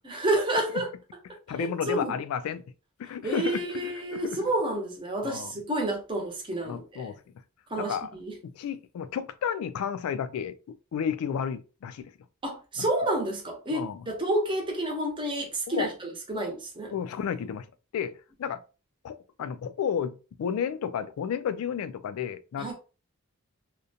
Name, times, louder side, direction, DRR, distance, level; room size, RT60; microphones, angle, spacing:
voice 1, 0.0-0.9 1.6-2.1 3.2-7.1 7.7-8.3 12.4-16.9 22.6-22.7, right 1 dB, 25° right, 0.7 m, -29 dB
voice 2, 1.5-2.6 3.0-4.5 5.2-5.5 6.6-7.2 7.8-8.2 8.4-12.1 12.8-12.9 13.7-14.1 15.7-15.9 16.9-17.7 17.9-18.6 19.0-22.7, left 7 dB, 85° left, 0.3 m, -32 dB
2.5 x 2.1 x 2.7 m
head